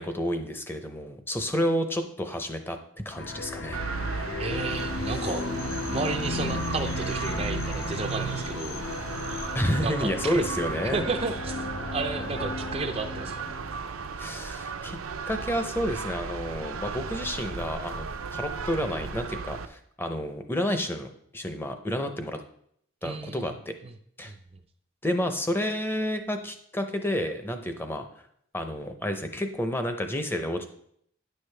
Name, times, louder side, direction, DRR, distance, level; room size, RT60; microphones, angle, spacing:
voice 1, 0.0-3.8 5.1-5.3 9.5-11.1 14.2-15.0 15.3-22.4 23.0-23.7 24.2-24.3 25.0-28.0 28.5-30.6, equal, 10° left, 6 dB, 0.6 m, -30 dB
sound 1, 3.1-13.8, left 2 dB, 60° left, 0.9 m, -35 dB
sound 2, 3.7-19.7, right 5 dB, 85° right, 0.6 m, -35 dB
voice 2, 4.4-5.4 5.9-8.8 9.8-10.4 10.9-13.5 23.0-23.5 23.8-23.9 24.3-24.4, right 3 dB, 30° right, 7 dB, 0.4 m, -32 dB
Drill, 4.5-9.8, left 10 dB, 75° left, 0.5 m, -45 dB
10.0 x 6.5 x 3.3 m, 0.68 s
head